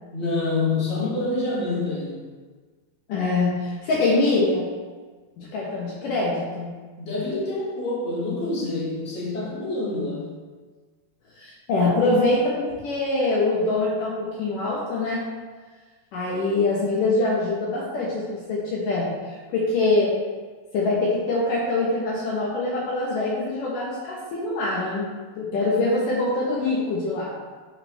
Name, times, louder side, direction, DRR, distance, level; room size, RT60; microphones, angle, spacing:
voice 1, 0.1-2.3 7.0-10.3, left 2 dB, 20° left, -9 dB, 2.6 m, -27 dB
voice 2, 3.1-4.7 5.4-6.7 11.4-12.5 12.8-15.2 16.1-20.1 20.7-25.1 25.4-27.3, left 2 dB, 65° left, -5 dB, 2.6 m, -24 dB
12.0 x 5.6 x 3.4 m, 1.4 s
omnidirectional pair, 4.3 m